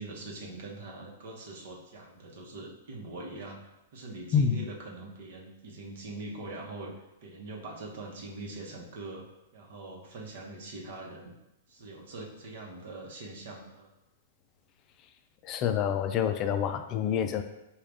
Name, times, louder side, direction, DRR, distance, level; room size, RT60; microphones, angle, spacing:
voice 1, 0.0-3.6 3.9-6.9 7.2-9.3 9.5-11.4 11.7-13.9, right 2 dB, 60° right, 0 dB, 0.9 m, -42 dB
voice 2, 4.3-4.7 15.4-17.4, left 8 dB, 35° left, 8 dB, 0.4 m, -27 dB
4.8 x 2.3 x 3.4 m, 0.93 s
hypercardioid pair, 115°, 0 cm